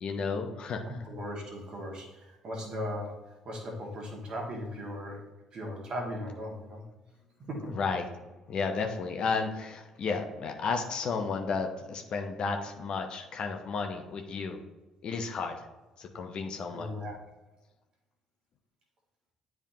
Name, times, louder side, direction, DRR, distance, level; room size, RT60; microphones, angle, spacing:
voice 1, 0.0-1.0 7.7-8.1 8.5-14.6 15.0-15.7 16.0-16.9, left 4 dB, 45° left, 4 dB, 0.7 m, -33 dB
voice 2, 0.8-5.2 5.5-6.8 7.5-7.7 16.7-17.2, equal, 45° right, 0 dB, 1.6 m, -38 dB
10.0 x 3.5 x 2.8 m, 1.1 s
figure-of-eight pair, 50°, 2 cm